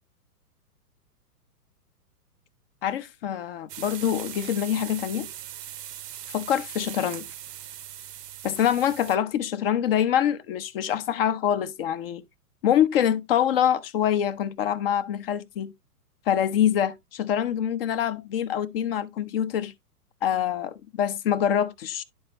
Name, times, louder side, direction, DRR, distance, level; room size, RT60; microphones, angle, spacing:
voice 1, 2.8-5.3 6.3-7.3 8.4-12.2 12.6-15.7 16.3-19.7 20.2-22.0, left 9 dB, 40° left, 0.6 m, -25 dB
sound 1, 3.7-9.2, right 11 dB, 80° right, 0.7 m, -40 dB
11.0 x 4.4 x 2.8 m
hypercardioid pair, 125°, 47 cm